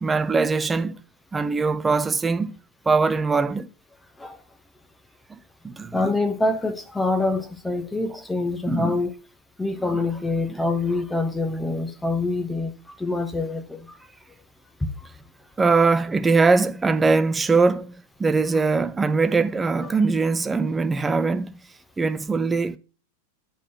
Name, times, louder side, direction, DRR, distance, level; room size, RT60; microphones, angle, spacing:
voice 1, 0.0-1.0 1.3-2.6 2.9-3.7 5.3-5.4 5.6-6.2 8.7-9.0 9.9-10.0 10.5-10.6 15.6-17.9 18.2-21.6 22.0-22.8, right 4 dB, 15° right, 0.5 m, -22 dB
voice 2, 5.9-9.1 9.6-12.7 13.0-13.9 19.8-19.9, left 2 dB, 5° left, 0.9 m, -25 dB
9.7 x 3.8 x 5.6 m
figure-of-eight pair, 90°, 0 cm